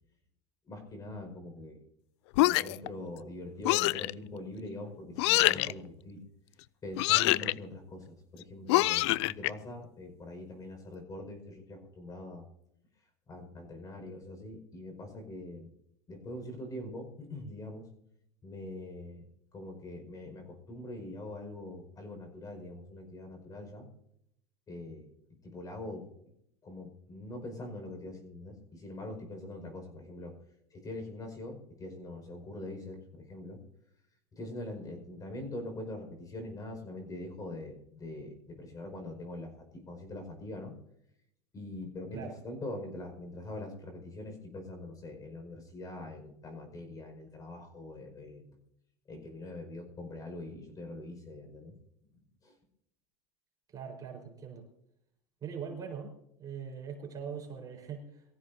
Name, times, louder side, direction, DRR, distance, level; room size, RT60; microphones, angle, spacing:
voice 1, 0.7-1.8 2.4-6.2 6.8-12.5 13.3-15.7 16.1-17.9 18.4-19.2 19.5-23.9 24.7-25.1 25.4-26.1 26.6-30.3 30.7-33.6 34.3-40.7 41.5-48.6 49.1-51.7 52.4-52.5, left 1 dB, 25° left, 5 dB, 5.3 m, -43 dB
sound 1, 2.3-2.9 3.6-4.1 5.2-5.7 7.0-7.5 8.7-9.5, left 19 dB, 75° left, 0.4 m, -25 dB
voice 2, 53.7-54.7 55.4-58.3, right 6 dB, 25° right, 1 dB, 4.6 m, -42 dB
23.5 x 15.0 x 2.8 m, 0.74 s
supercardioid pair, 130°, 15 cm